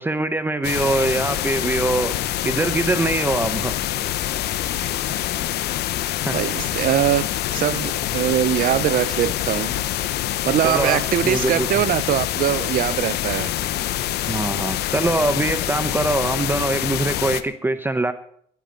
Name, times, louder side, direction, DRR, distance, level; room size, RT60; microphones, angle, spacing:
voice 1, 0.0-2.2 2.4-3.8 6.2-6.4 10.6-11.8 14.3-18.1, right 2 dB, 10° right, 0.8 m, -23 dB
sound 1, 0.6-17.4, left 13 dB, 75° left, 0.9 m, -25 dB
voice 2, 6.3-7.3 7.5-9.8 10.5-13.5, right 12 dB, 55° right, 0.7 m, -22 dB
18.5 x 9.4 x 5.3 m
cardioid pair, 110°, 17 cm